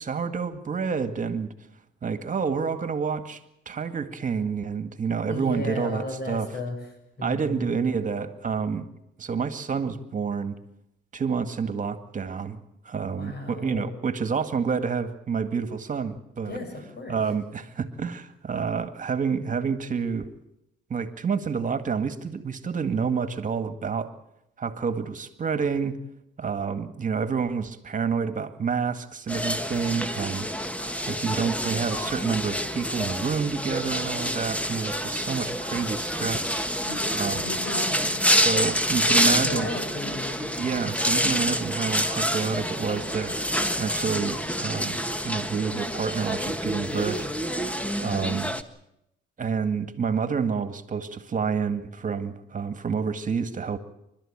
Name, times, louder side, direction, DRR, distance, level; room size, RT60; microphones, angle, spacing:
voice 1, 0.0-1.5 2.0-3.4 3.7-6.5 7.2-8.9 9.2-10.6 11.1-12.6 12.9-16.6 17.1-20.3 20.9-24.1 24.6-26.0 26.4-30.7 31.1-37.4 38.3-39.7 40.6-47.7 48.0-48.6 49.4-53.8, right 6 dB, 40° right, 10 dB, 2.0 m, -29 dB
voice 2, 5.3-6.8 7.2-7.7 13.0-14.0 16.4-17.2 36.8-38.2 39.1-40.5, left 2 dB, 55° left, 5 dB, 7.8 m, -35 dB
sound 1, 29.3-48.6, equal, 5° left, 1.5 m, -27 dB
28.5 x 13.0 x 8.8 m, 0.82 s
cardioid pair, 90°, 20 cm